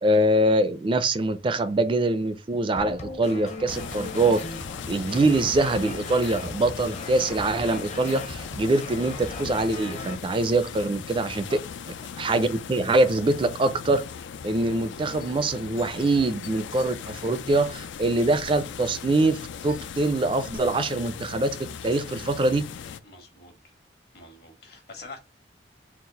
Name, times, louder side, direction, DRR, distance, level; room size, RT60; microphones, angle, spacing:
voice 1, 0.0-4.4 4.9-11.5 12.2-14.0 14.4-19.4 19.6-22.6, right 2 dB, 30° right, 0.3 m, -24 dB
sound 1, 2.8-10.1, left 2 dB, 40° left, 0.7 m, -38 dB
sound 2, 3.7-23.0, left 7 dB, 90° left, 0.4 m, -39 dB
voice 2, 23.0-23.7 24.1-25.2, left 3 dB, 60° left, 1.3 m, -45 dB
4.0 x 2.4 x 3.8 m
head